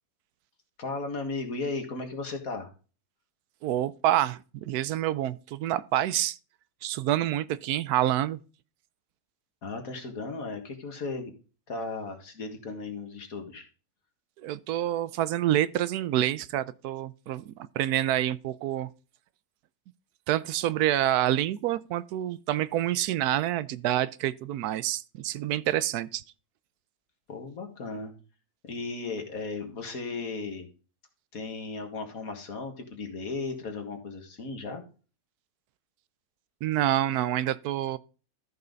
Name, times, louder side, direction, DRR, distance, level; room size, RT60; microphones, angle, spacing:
voice 1, 0.8-2.7 9.6-11.3 11.7-13.7 27.3-28.1 28.6-30.7 31.3-34.8, left 3 dB, 65° left, 2.1 m, -35 dB
voice 2, 3.6-6.4 6.8-8.4 14.4-18.9 20.3-26.2 36.6-38.0, right 12 dB, 85° right, 1.1 m, -27 dB
13.5 x 5.6 x 3.9 m
omnidirectional pair, 1.6 m